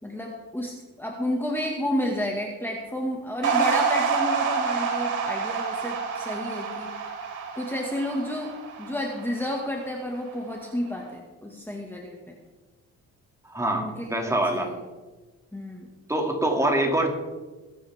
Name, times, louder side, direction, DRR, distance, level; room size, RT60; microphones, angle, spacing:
voice 1, 0.0-6.9 7.6-8.5 8.8-12.3 13.7-14.8 15.5-15.9, left 1 dB, 5° left, -1 dB, 2.1 m, -31 dB
sound 1, 3.4-9.9, right 5 dB, 90° right, 3.2 m, -28 dB
voice 2, 13.4-14.7 16.1-17.1, right 1 dB, 10° right, 1 dB, 2.8 m, -25 dB
21.5 x 9.7 x 3.7 m, 1.2 s
cardioid pair, 90°, 30 cm